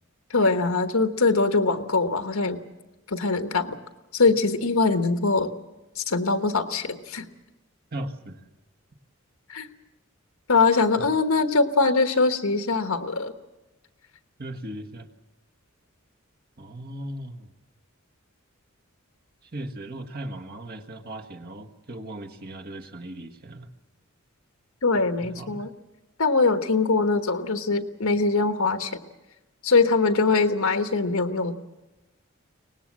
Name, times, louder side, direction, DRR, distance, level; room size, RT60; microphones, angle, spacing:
voice 1, 0.3-2.6 3.1-3.8 4.1-5.5 6.0-7.3 9.5-9.7 10.5-13.3 24.8-25.7 26.2-29.0 29.6-31.5, left 3 dB, 80° left, 8 dB, 1.3 m, -22 dB
voice 2, 7.9-8.4 11.0-11.1 14.4-15.1 16.6-17.5 19.4-23.7 25.2-25.7, right 1 dB, 45° right, 4 dB, 1.6 m, -37 dB
24.0 x 19.0 x 7.5 m, 1.0 s
head